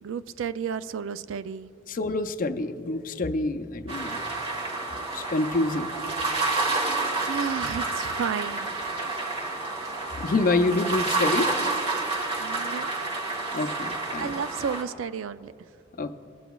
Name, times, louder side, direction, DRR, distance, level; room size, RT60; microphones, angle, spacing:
voice 1, 0.0-1.7 7.2-9.1 12.4-12.9 14.2-15.5, right 7 dB, 85° right, 14 dB, 0.4 m, -32 dB
voice 2, 1.9-4.2 5.0-5.9 10.2-11.5 13.5-14.3 16.0-16.1, left 2 dB, 45° left, 8 dB, 0.5 m, -27 dB
sound 1, 3.9-14.8, right 3 dB, 30° right, 1.3 m, -29 dB
20.0 x 8.0 x 2.3 m, 2.7 s
head